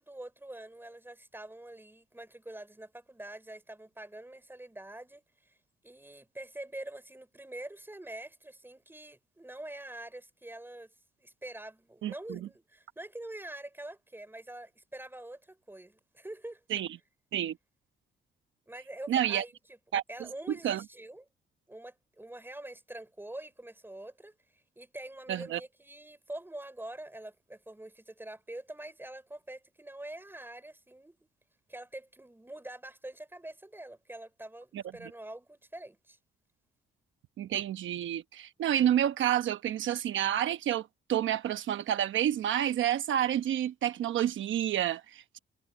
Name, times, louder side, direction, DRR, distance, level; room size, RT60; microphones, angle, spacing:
voice 1, 0.0-5.6 5.8-10.9 11.2-16.6 18.7-19.8 20.1-21.3 21.7-31.2 31.7-36.2, right 1 dB, 10° right, 4.8 m, -45 dB
voice 2, 12.0-12.4 16.7-16.9 17.3-17.6 19.1-19.4 19.9-20.0 20.6-20.8 25.3-25.6 37.4-45.4, right 11 dB, 75° right, 1.0 m, -29 dB
cardioid pair, 75°, 20 cm